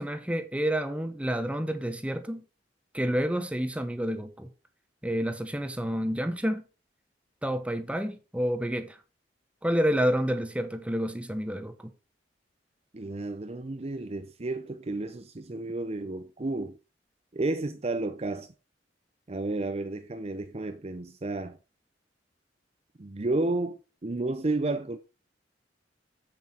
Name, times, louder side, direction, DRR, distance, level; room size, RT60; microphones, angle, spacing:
voice 1, 0.0-2.4 2.9-4.5 5.0-6.6 7.4-9.0 9.6-11.9, equal, 5° right, 1.0 m, -29 dB
voice 2, 12.9-16.8 17.3-18.5 19.3-21.6 23.0-25.0, right 2 dB, 35° right, 0.7 m, -32 dB
7.9 x 7.5 x 4.4 m
head